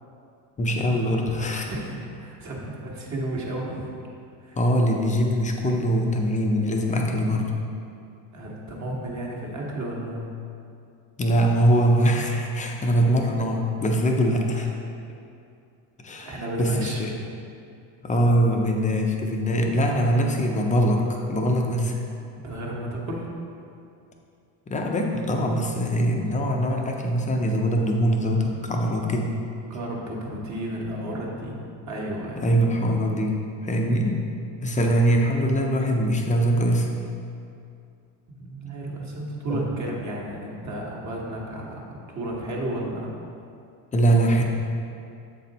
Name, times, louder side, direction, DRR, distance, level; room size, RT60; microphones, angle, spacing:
voice 1, 0.6-1.7 4.6-7.5 11.2-14.8 16.0-17.1 18.0-22.0 24.7-29.3 32.4-34.2 34.6-36.9 39.5-39.6 43.9-44.4, equal, 15° left, 1 dB, 0.4 m, -22 dB
voice 2, 1.6-3.9 4.4-4.6 8.3-10.3 16.2-17.0 22.4-23.3 29.7-31.6 31.9-32.5 38.3-43.1, right 1 dB, 35° right, -2 dB, 1.3 m, -32 dB
7.5 x 4.3 x 4.0 m, 2.5 s
cardioid pair, 130°, 48 cm